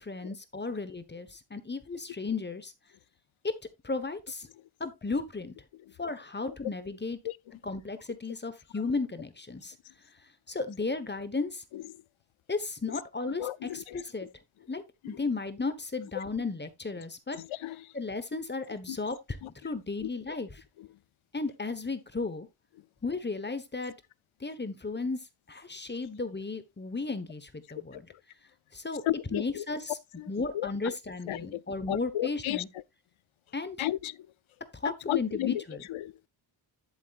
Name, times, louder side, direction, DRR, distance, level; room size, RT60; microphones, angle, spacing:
voice 1, 0.0-2.7 3.4-3.5 3.8-4.5 4.8-5.5 6.0-7.2 7.6-9.7 10.5-11.6 12.5-14.3 14.7-17.4 17.9-19.4 19.6-20.6 21.3-22.5 23.0-23.9 24.4-25.2 25.5-28.0 28.7-29.0 29.3-29.9 30.3-32.7 33.5-33.9 34.8-35.8, left 3 dB, 20° left, 1.2 m, -34 dB
voice 2, 13.4-14.0 15.0-15.2 16.1-16.2 17.3-17.9 18.9-19.0 19.4-19.5 20.0-20.1 20.8-20.9 27.9-28.2 29.1-29.6 30.2-30.3 30.5-30.9 31.3-31.6 31.9-32.6 33.8-34.3 35.1-36.2, left 14 dB, 90° left, 0.5 m, -34 dB
11.5 x 7.2 x 2.4 m
wide cardioid pair, 120°, 46 cm